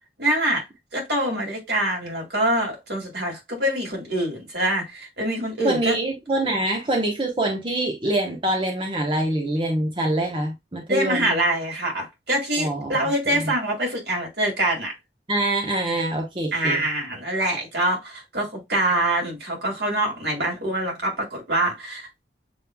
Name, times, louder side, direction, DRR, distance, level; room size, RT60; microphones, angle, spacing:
voice 1, 0.2-0.6 0.9-6.0 10.9-14.9 16.5-22.2, right 1 dB, 75° right, 2.4 m, -25 dB
voice 2, 5.6-11.4 12.6-13.0 13.3-13.5 15.3-16.8, right 1 dB, 30° right, 1.0 m, -25 dB
7.0 x 3.2 x 2.2 m
head